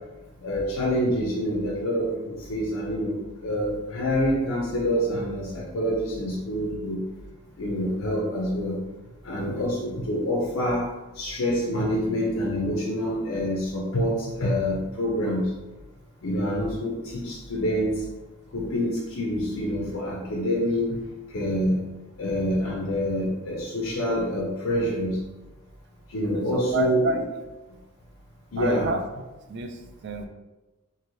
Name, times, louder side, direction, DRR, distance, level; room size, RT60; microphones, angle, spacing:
voice 1, 0.4-3.2 3.4-7.0 7.6-8.8 9.2-10.9 11.1-15.5 16.2-18.0 18.5-21.0 21.3-21.8 22.2-25.2 26.1-27.1 28.5-28.9, equal, 65° left, -3 dB, 0.5 m, -26 dB
voice 2, 26.3-27.2 28.6-29.0 29.5-30.3, right 2 dB, 50° right, 6 dB, 0.3 m, -29 dB
3.1 x 2.6 x 2.6 m, 1.1 s
head